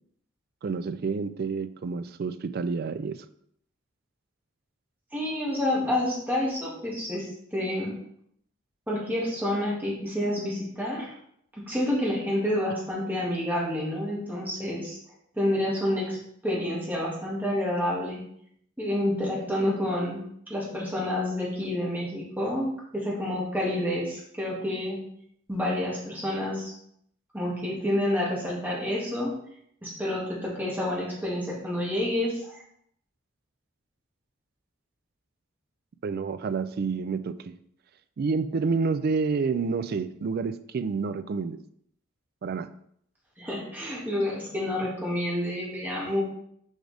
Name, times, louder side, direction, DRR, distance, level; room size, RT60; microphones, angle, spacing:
voice 1, 0.6-3.2 36.0-37.5 38.2-41.6 42.4-42.7, right 4 dB, 45° right, 12 dB, 0.3 m, -29 dB
voice 2, 5.1-8.0 8.9-11.1 11.6-15.0 15.3-16.2 16.4-18.2 18.8-25.0 25.5-26.7 27.3-29.3 29.8-32.6 43.4-46.2, left 1 dB, 10° right, -5 dB, 1.7 m, -29 dB
6.4 x 4.8 x 3.4 m, 0.69 s
head